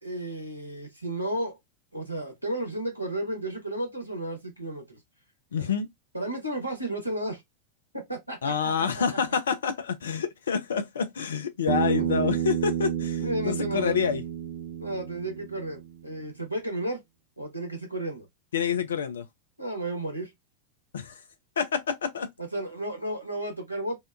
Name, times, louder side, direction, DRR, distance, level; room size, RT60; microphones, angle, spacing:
voice 1, 0.0-1.6 1.9-5.0 5.5-5.7 6.1-7.4 7.9-9.2 13.2-14.0 14.8-17.0 17.4-18.3 19.6-20.3 22.4-24.0, right 1 dB, 90° right, 1.0 m, -33 dB
voice 2, 5.5-5.9 8.4-14.2 18.5-19.3 20.9-21.2 21.6-22.3, left 6 dB, 65° left, 0.3 m, -28 dB
Bass guitar, 11.7-16.0, right 10 dB, 50° right, 0.5 m, -30 dB
2.6 x 2.1 x 2.3 m
figure-of-eight pair, 90°, 0 cm